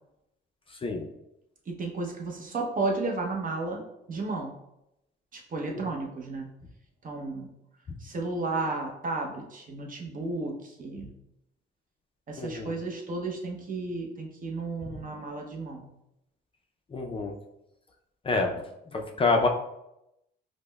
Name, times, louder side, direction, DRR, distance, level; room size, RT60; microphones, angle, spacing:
voice 1, 1.7-3.8 4.1-4.5 5.3-6.5 7.0-7.5 8.0-11.1 12.3-15.8, right 3 dB, 45° right, 0 dB, 0.7 m, -33 dB
voice 2, 12.4-12.7 16.9-17.3 18.3-18.6 18.9-19.5, left 3 dB, 25° left, 2 dB, 0.4 m, -26 dB
5.0 x 2.1 x 2.2 m, 0.85 s
cardioid pair, 90°, 20 cm